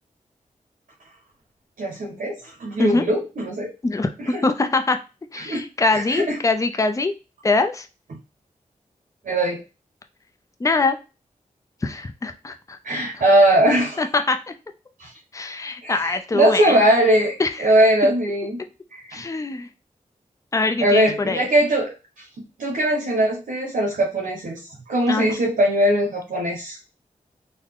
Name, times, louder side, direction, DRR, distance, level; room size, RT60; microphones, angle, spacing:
voice 1, 1.8-3.7 4.2-4.4 5.4-5.6 5.9-6.4 9.2-9.6 12.8-14.0 15.0-15.1 15.8-18.6 18.9-19.3 20.8-22.2 22.6-24.6 24.9-26.8, right 1 dB, 90° right, 0 dB, 0.8 m, -20 dB
voice 2, 3.8-5.0 5.3-7.1 7.4-7.9 10.6-11.0 11.8-12.8 14.0-14.5 15.3-16.8 17.4-17.7 19.1-19.7 20.5-21.5 25.1-25.3, left 3 dB, 25° left, 7 dB, 0.5 m, -23 dB
3.9 x 2.1 x 3.5 m, 0.30 s
wide cardioid pair, 75°, 14 cm